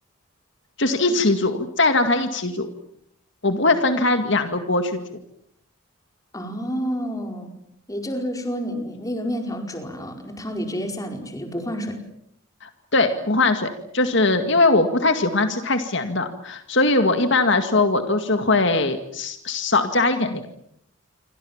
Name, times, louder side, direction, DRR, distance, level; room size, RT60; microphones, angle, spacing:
voice 1, 0.8-2.7 3.4-5.0 12.6-20.5, left 2 dB, 55° left, 7 dB, 2.1 m, -21 dB
voice 2, 6.3-7.5 7.9-12.0, equal, 15° left, 4 dB, 4.8 m, -29 dB
28.5 x 25.0 x 7.3 m, 0.71 s
head